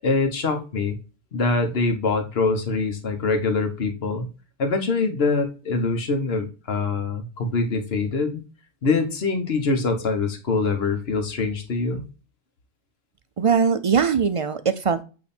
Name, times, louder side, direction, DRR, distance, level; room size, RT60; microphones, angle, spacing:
voice 1, 0.0-1.0 1.3-4.3 4.6-8.4 8.8-12.0, left 3 dB, 70° left, 6 dB, 1.3 m, -24 dB
voice 2, 13.4-15.0, right 6 dB, 45° right, 11 dB, 0.4 m, -21 dB
8.7 x 3.1 x 4.3 m, 0.33 s
omnidirectional pair, 1.1 m